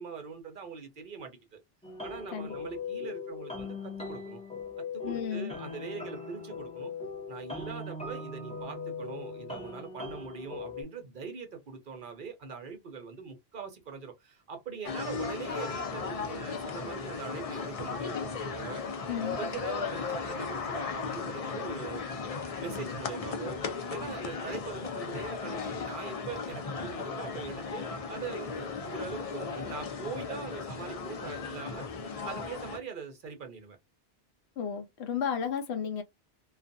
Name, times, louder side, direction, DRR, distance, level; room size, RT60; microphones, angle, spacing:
voice 1, 0.0-1.6 2.0-4.4 4.8-6.9 7.3-18.8 19.4-22.1 22.5-23.6 23.8-31.9 32.2-33.8, right 5 dB, 55° right, 0.8 m, -42 dB
sound 1, 1.8-10.8, left 4 dB, 5° left, 0.8 m, -40 dB
voice 2, 5.0-5.5 19.1-19.4 34.6-36.0, left 7 dB, 85° left, 0.9 m, -33 dB
sound 2, 14.8-32.8, left 5 dB, 45° left, 0.5 m, -36 dB
2.4 x 2.3 x 2.5 m
omnidirectional pair, 1.1 m